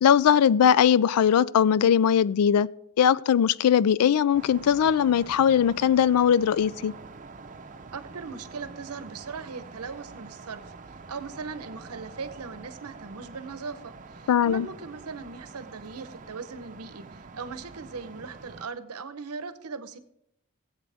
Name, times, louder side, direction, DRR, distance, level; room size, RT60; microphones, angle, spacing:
voice 1, 0.0-2.7 3.0-6.9 14.3-14.7, left 8 dB, 85° left, 0.4 m, -20 dB
sound 1, 4.3-18.7, right 4 dB, 35° right, 0.6 m, -46 dB
voice 2, 7.9-10.7 11.1-20.0, right 5 dB, 85° right, 0.8 m, -39 dB
18.5 x 8.1 x 3.5 m
head